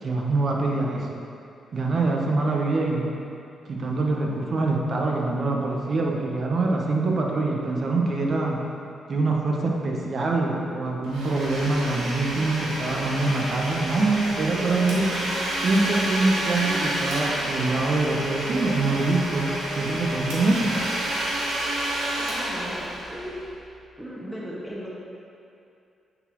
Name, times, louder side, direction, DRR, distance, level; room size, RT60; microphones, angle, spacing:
voice 1, 0.0-1.1 1.7-3.1 3.7-8.6 9.1-15.1 15.6-19.5 19.8-20.7, right 3 dB, 55° right, -1 dB, 0.9 m, -24 dB
Domestic sounds home sounds, 11.0-23.6, right 1 dB, 90° right, 1.0 m, -29 dB
voice 2, 22.2-23.4 24.0-24.9, equal, 5° right, -5 dB, 1.1 m, -37 dB
8.8 x 4.2 x 3.0 m, 2.6 s
supercardioid pair, 55°, 0 cm